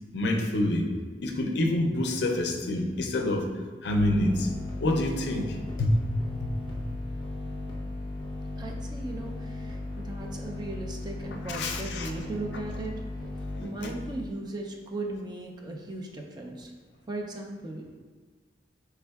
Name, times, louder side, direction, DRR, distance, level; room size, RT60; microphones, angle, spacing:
voice 1, 0.1-0.9 1.2-3.5 3.8-4.5 4.8-6.1 6.4-6.8 11.5-12.1 13.6-13.9, left 1 dB, 65° left, 3 dB, 0.4 m, -27 dB
sound 1, 4.0-14.3, left 2 dB, 30° left, 0.8 m, -37 dB
voice 2, 8.6-13.0 13.6-16.7 17.1-18.0, right 2 dB, 25° right, 0 dB, 0.4 m, -37 dB
5.3 x 3.4 x 2.3 m, 1.4 s
head